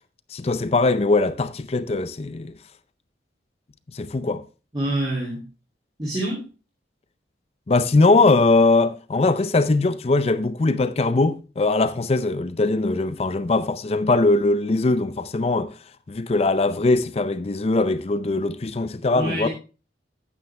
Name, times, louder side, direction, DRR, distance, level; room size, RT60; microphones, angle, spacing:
voice 1, 0.3-2.5 3.9-4.4 7.7-15.7 16.1-19.5, left 3 dB, 35° left, 0.5 m, -21 dB
voice 2, 4.7-5.4 6.0-6.4 19.1-19.5, right 1 dB, 25° right, 2.6 m, -26 dB
9.3 x 9.3 x 3.3 m
head